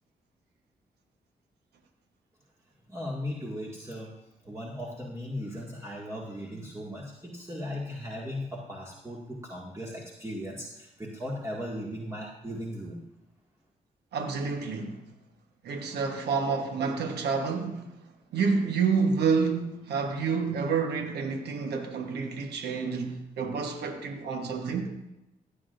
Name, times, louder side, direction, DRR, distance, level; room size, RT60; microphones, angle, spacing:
voice 1, 2.9-4.1 4.4-13.0, equal, 15° right, 2.1 m, -37 dB
voice 2, 14.1-15.0 15.6-18.0 18.3-24.9, right 5 dB, 85° right, 1.2 m, -29 dB
16.0 x 8.4 x 2.6 m
supercardioid pair, 45°, 17 cm